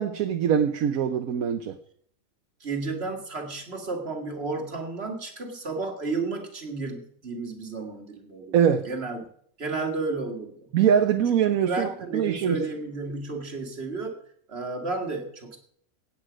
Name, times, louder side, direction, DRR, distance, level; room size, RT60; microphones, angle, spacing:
voice 1, 0.0-1.8 8.5-8.9 10.7-12.6, right 8 dB, 85° right, 7 dB, 1.2 m, -23 dB
voice 2, 2.6-9.3 9.6-10.7 11.7-14.2 14.5-15.6, right 3 dB, 50° right, 3 dB, 2.1 m, -32 dB
16.0 x 9.0 x 5.0 m, 0.62 s
omnidirectional pair, 1.4 m